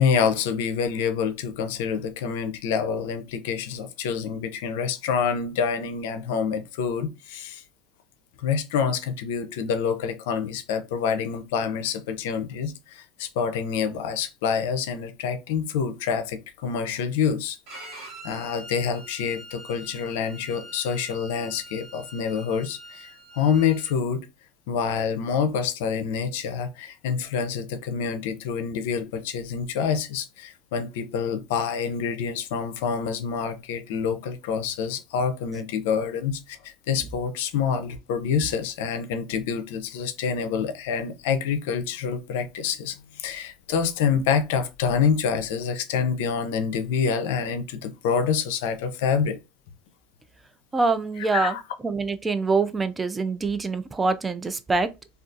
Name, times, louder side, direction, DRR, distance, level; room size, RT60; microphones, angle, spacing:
voice 1, 0.0-7.6 8.4-24.3 24.7-49.4 51.2-51.6, left 6 dB, 80° left, 0.4 m, -27 dB
Bowed string instrument, 17.7-23.9, right 1 dB, 55° right, 1.0 m, -44 dB
voice 2, 50.7-51.6 51.8-54.9, right 3 dB, 20° right, 0.3 m, -25 dB
2.4 x 2.3 x 2.5 m
supercardioid pair, 105°, 0 cm